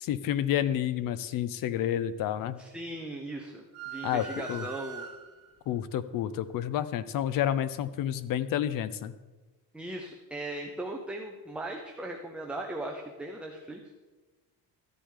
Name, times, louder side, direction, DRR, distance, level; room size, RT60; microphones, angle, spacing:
voice 1, 0.0-2.6 4.0-4.7 5.7-9.1, left 11 dB, 50° left, 15 dB, 0.5 m, -30 dB
voice 2, 2.6-5.0 9.7-13.8, right 1 dB, 5° right, 1 dB, 0.4 m, -38 dB
sound 1, 3.7-5.6, right 7 dB, 35° right, 1.9 m, -42 dB
13.5 x 10.0 x 3.7 m, 1.2 s
cardioid pair, 175°, 43 cm